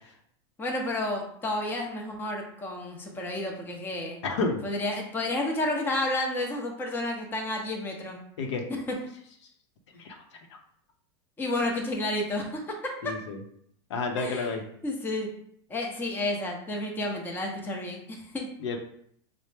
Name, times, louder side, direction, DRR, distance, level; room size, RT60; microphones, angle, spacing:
voice 1, 0.6-4.2 4.6-8.2 8.7-9.0 11.4-13.1 14.2-14.6 14.8-15.3 15.7-18.5, left 1 dB, 15° left, 0 dB, 0.7 m, -31 dB
voice 2, 4.2-4.6 8.4-8.6 10.0-10.1 13.0-13.4 13.9-14.6 18.6-18.8, left 4 dB, 80° left, 3 dB, 0.7 m, -30 dB
4.3 x 2.0 x 3.3 m, 0.68 s
supercardioid pair, 135°, 14 cm